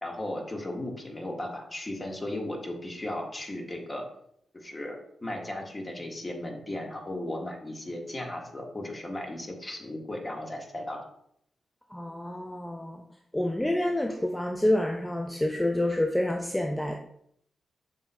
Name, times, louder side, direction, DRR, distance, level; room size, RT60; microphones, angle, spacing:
voice 1, 0.0-4.1 4.5-11.0, left 1 dB, 35° left, 1 dB, 1.2 m, -36 dB
voice 2, 11.9-13.0 13.3-17.0, left 1 dB, 10° left, 3 dB, 0.4 m, -28 dB
7.0 x 2.8 x 2.2 m, 0.69 s
supercardioid pair, 40°, 0 cm